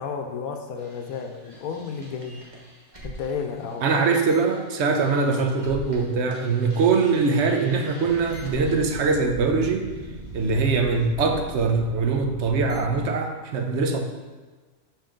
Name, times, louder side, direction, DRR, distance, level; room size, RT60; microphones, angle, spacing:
voice 1, 0.0-2.4 3.0-3.9, left 6 dB, 90° left, 4 dB, 1.1 m, -32 dB
sound 1, 0.8-6.0 6.3-13.0, right 2 dB, 35° right, 1.1 m, -41 dB
voice 2, 3.8-9.9 10.3-14.0, right 4 dB, 60° right, 4 dB, 0.9 m, -22 dB
5.5 x 5.2 x 3.7 m, 1.4 s
omnidirectional pair, 1.5 m